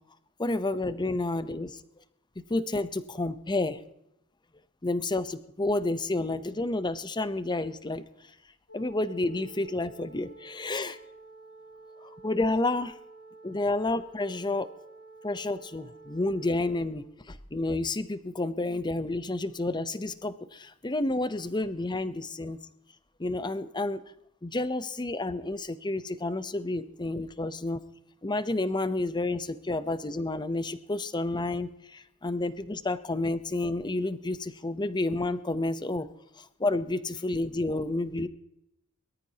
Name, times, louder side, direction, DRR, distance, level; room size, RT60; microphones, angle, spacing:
voice 1, 0.4-1.8 2.4-3.8 4.8-8.0 8.7-11.0 12.0-12.9 13.4-14.7 15.2-22.6 23.2-24.0 24.4-27.8 28.2-36.1 36.4-38.3, left 2 dB, 20° left, 13 dB, 0.7 m, -30 dB
sound 1, 8.7-16.9, right 3 dB, 65° left, 3.5 m, -50 dB
23.0 x 13.5 x 2.9 m, 0.79 s
head